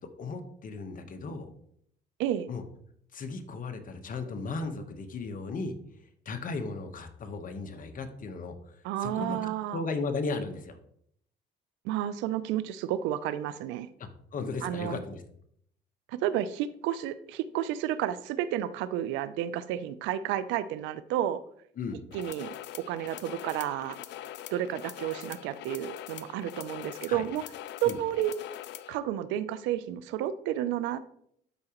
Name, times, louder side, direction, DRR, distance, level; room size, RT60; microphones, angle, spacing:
voice 1, 0.2-1.5 2.5-2.6 3.1-5.7 6.2-10.8 14.0-15.2 21.8-22.0 27.1-27.3 27.8-28.0, left 3 dB, 45° left, 7 dB, 1.1 m, -36 dB
voice 2, 8.8-9.8 11.8-13.9 14.6-15.0 16.1-21.4 22.1-24.0 24.5-27.4 27.8-28.3 28.9-31.0, right 11 dB, 90° right, 15 dB, 0.5 m, -31 dB
sound 1, 22.1-29.0, left 12 dB, 70° left, 0.5 m, -43 dB
12.0 x 4.8 x 3.0 m, 0.69 s
cardioid pair, 85°, 19 cm